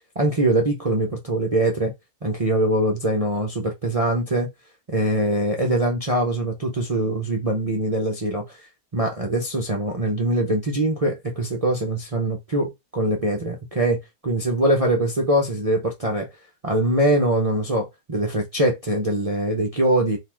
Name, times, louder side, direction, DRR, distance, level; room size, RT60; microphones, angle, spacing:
voice 1, 0.2-1.9 2.2-4.5 4.9-8.7 8.9-16.3 16.6-20.2, right 1 dB, 30° right, 0.7 m, -23 dB
4.0 x 2.8 x 4.5 m
omnidirectional pair, 1.5 m